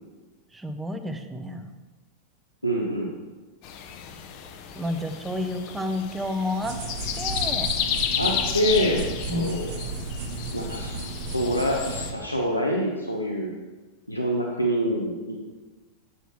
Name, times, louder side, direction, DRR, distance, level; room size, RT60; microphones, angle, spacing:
voice 1, 0.5-1.7 4.7-6.8 7.2-7.7 9.3-9.5, left 1 dB, 5° right, 6 dB, 0.6 m, -30 dB
voice 2, 2.6-3.1 8.2-9.7 10.5-10.9 11.3-13.5 14.1-15.4, equal, 90° left, -1 dB, 0.7 m, -26 dB
sound 1, 3.6-12.1, left 8 dB, 45° left, 0.5 m, -32 dB
sound 2, 6.6-12.1, right 3 dB, 55° right, 1.1 m, -34 dB
7.9 x 6.3 x 3.0 m, 1.3 s
figure-of-eight pair, 90°, 0 cm